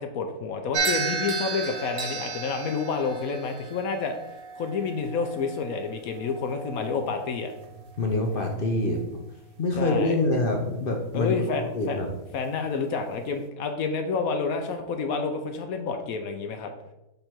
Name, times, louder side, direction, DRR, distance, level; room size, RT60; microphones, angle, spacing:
voice 1, 0.0-4.2 4.5-7.5 9.8-10.2 11.1-12.0 12.3-16.7, left 4 dB, 70° left, 6 dB, 1.0 m, -29 dB
sound 1, 0.7-9.1, right 4 dB, 60° right, 0.6 m, -35 dB
voice 2, 8.0-9.0 9.6-11.3 11.7-12.1, left 2 dB, 50° left, 1 dB, 0.7 m, -25 dB
6.8 x 3.4 x 4.3 m, 0.92 s
omnidirectional pair, 1.7 m